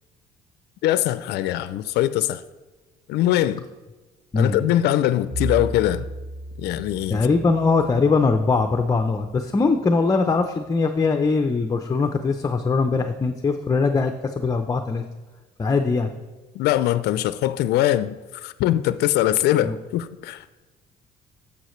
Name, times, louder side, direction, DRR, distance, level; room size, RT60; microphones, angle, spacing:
voice 1, 0.8-2.4 3.1-3.6 4.3-6.1 6.6-7.3 16.5-20.6, left 13 dB, 75° left, 0.4 m, -22 dB
voice 2, 4.3-4.6 7.1-15.0 15.6-16.1 19.6-19.8, left 4 dB, 20° left, 0.5 m, -21 dB
Bowed string instrument, 5.3-9.5, equal, 35° right, 1.6 m, -35 dB
11.5 x 7.1 x 3.1 m
cardioid pair, 110°, 17 cm